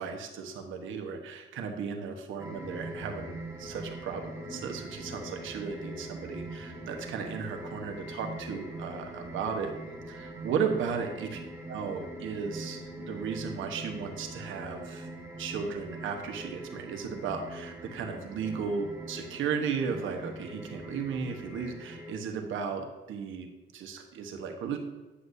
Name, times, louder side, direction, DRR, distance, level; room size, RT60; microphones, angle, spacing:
voice 1, 0.0-9.7 10.1-15.1 15.4-23.5 23.7-24.8, right 6 dB, 80° right, 4 dB, 1.2 m, -35 dB
sound 1, 2.4-22.2, right 1 dB, 15° right, 1.8 m, -42 dB
9.9 x 7.9 x 2.7 m, 1.2 s
cardioid pair, 90°, 20 cm